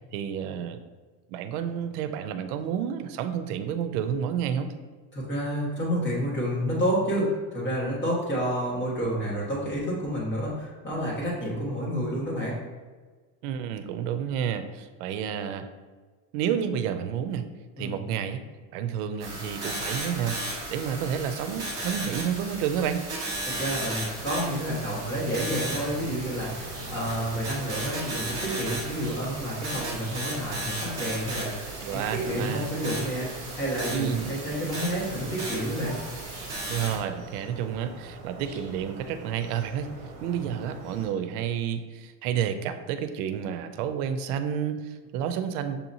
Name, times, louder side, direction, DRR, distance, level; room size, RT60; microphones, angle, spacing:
voice 1, 0.1-0.8 1.3-4.7 13.4-15.7 16.3-17.4 17.8-18.4 18.7-20.4 20.7-23.0 31.8-32.7 33.9-34.3 36.7-39.9 40.2-45.8, right 8 dB, 85° right, 10 dB, 0.6 m, -30 dB
voice 2, 5.1-12.6 17.8-18.0 23.5-36.0, equal, 25° left, -6 dB, 1.5 m, -29 dB
sound 1, 19.2-37.0, right 1 dB, 10° right, 1.2 m, -35 dB
sound 2, 25.3-41.1, right 2 dB, 40° right, 1.1 m, -43 dB
6.8 x 2.9 x 2.7 m, 1.4 s
cardioid pair, 170°, 44 cm